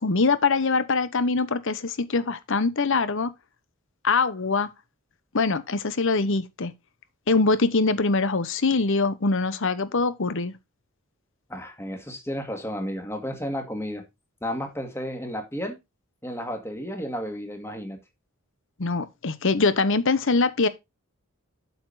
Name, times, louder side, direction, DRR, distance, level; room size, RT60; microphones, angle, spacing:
voice 1, 0.0-3.3 4.0-4.7 5.3-6.7 7.3-10.5 18.8-20.7, left 3 dB, 60° left, 1.0 m, -23 dB
voice 2, 11.5-14.0 14.4-15.8 16.2-18.0, equal, 10° left, 2.0 m, -32 dB
8.1 x 7.0 x 4.0 m
head